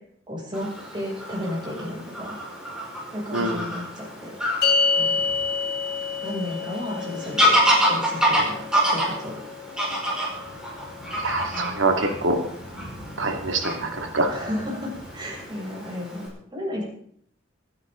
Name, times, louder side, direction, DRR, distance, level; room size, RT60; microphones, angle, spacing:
voice 1, 0.3-2.4 3.1-4.3 4.9-5.2 6.2-7.6 7.8-9.3 11.5-11.8 14.3-16.9, left 1 dB, 25° right, -4 dB, 7.4 m, -33 dB
Fowl / Bird vocalization bird call bird song, 0.5-16.3, equal, 5° right, 5.2 m, -28 dB
sound 1, 4.6-11.2, left 5 dB, 55° left, 4.9 m, -28 dB
voice 2, 11.2-12.4 13.2-14.3, right 2 dB, 70° right, 4 dB, 2.6 m, -25 dB
26.5 x 10.5 x 4.0 m, 0.65 s
head